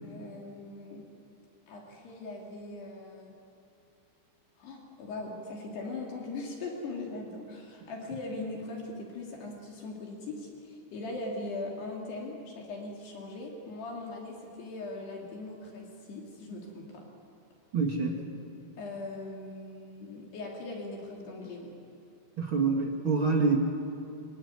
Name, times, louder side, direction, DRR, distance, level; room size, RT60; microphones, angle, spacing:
voice 1, 0.0-1.0 1.7-3.4 4.6-17.1 18.8-21.7, left 2 dB, 65° left, -1 dB, 4.8 m, -40 dB
voice 2, 17.7-18.2 22.4-23.6, right 4 dB, 40° right, 1 dB, 2.0 m, -26 dB
25.0 x 24.5 x 9.8 m, 2.5 s
omnidirectional pair, 5.2 m